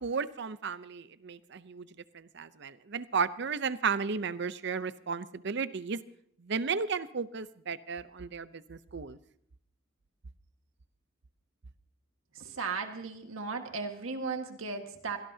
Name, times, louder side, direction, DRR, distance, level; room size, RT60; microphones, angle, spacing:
voice 1, 0.0-1.9 2.1-6.0 6.4-9.2, right 5 dB, 55° right, 15 dB, 0.6 m, -34 dB
voice 2, 12.3-15.2, right 4 dB, 85° right, 5 dB, 1.6 m, -36 dB
24.5 x 18.0 x 2.8 m, 0.69 s
head